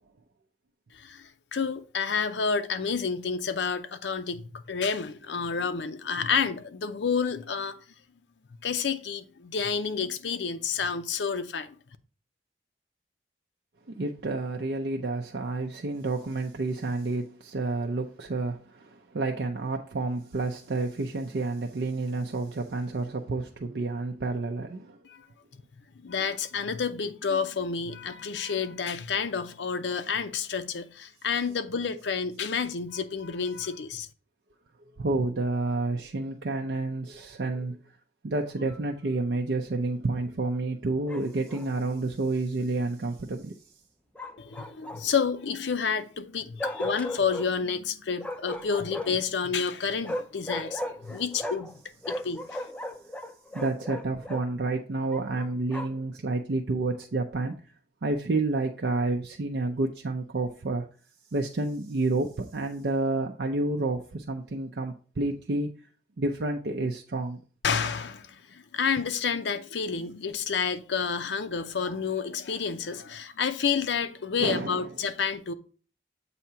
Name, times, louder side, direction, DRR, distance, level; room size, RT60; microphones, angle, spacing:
voice 1, 0.9-7.8 8.6-11.8 25.0-25.3 26.0-34.1 44.4-51.7 52.1-52.6 67.6-75.5, left 6 dB, 90° left, 0.6 m, -30 dB
voice 2, 13.9-25.0 35.0-37.8 38.2-43.5 53.5-57.5 58.0-60.9 61.3-65.7 66.2-67.4 74.4-74.9, right 2 dB, 75° right, 0.5 m, -29 dB
Bark, 41.1-41.7 44.2-45.3 46.6-47.5 48.2-49.3 50.0-51.8 52.0-54.5 55.1-56.1, left 1 dB, 5° left, 0.4 m, -36 dB
7.7 x 2.8 x 5.6 m
head